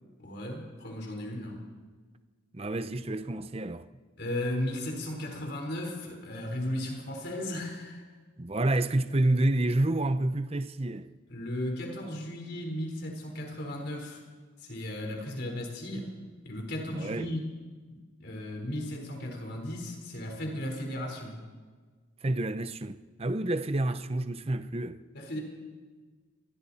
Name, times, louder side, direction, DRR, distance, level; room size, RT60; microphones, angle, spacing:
voice 1, 0.2-1.6 4.2-8.0 11.3-14.2 14.6-16.1 16.4-17.5 17.9-21.4 25.1-25.4, left 1 dB, 55° left, 4.4 m, -35 dB
voice 2, 2.5-3.9 8.4-11.1 16.9-17.3 22.2-25.0, right 1 dB, 30° right, 0.7 m, -29 dB
27.5 x 22.5 x 4.3 m
head